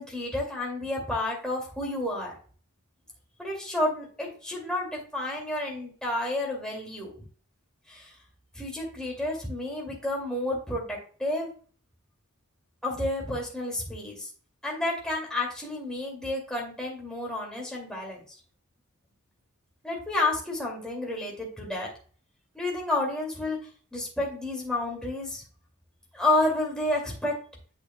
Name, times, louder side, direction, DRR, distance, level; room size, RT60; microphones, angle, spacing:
voice 1, 0.0-2.3 3.4-7.1 7.9-8.1 8.5-11.5 12.8-14.3 14.6-18.2 19.8-21.9 22.5-23.6 23.9-25.4 26.1-27.3, left 2 dB, 5° left, -3 dB, 2.4 m, -30 dB
8.3 x 6.2 x 2.3 m, 0.42 s
head